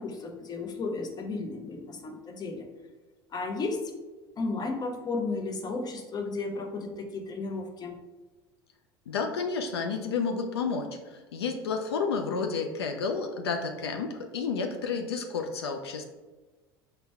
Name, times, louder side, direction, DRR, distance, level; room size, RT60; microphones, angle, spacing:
voice 1, 0.0-2.7 3.3-3.9 4.4-8.0, left 3 dB, 30° left, 4 dB, 0.7 m, -34 dB
voice 2, 9.1-16.0, left 5 dB, 85° left, 4 dB, 0.4 m, -31 dB
4.0 x 2.2 x 4.5 m, 1.2 s
hypercardioid pair, 75°, 13 cm